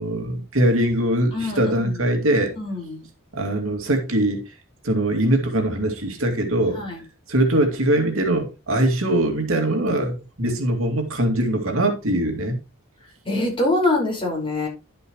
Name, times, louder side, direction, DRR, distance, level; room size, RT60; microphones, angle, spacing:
voice 1, 0.0-2.5 3.3-4.5 4.8-6.8 7.3-12.6, right 1 dB, 80° right, 2.6 m, -22 dB
voice 2, 1.3-1.9 2.6-3.0 6.8-7.0 13.3-14.7, left 2 dB, 25° left, 5.3 m, -24 dB
11.5 x 7.7 x 3.1 m
head